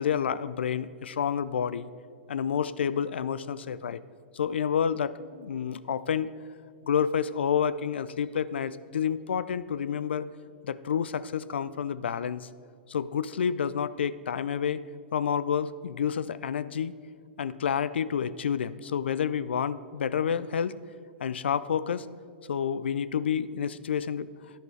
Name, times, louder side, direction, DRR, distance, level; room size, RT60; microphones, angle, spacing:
voice 1, 0.0-1.9 2.3-4.0 4.3-6.3 6.8-10.3 10.6-12.5 12.9-14.8 15.1-16.9 17.4-20.8 21.2-22.1 22.5-24.3, left 7 dB, 75° left, 17 dB, 0.4 m, -29 dB
10.5 x 10.5 x 3.3 m, 2.1 s
hypercardioid pair, 110°, 6 cm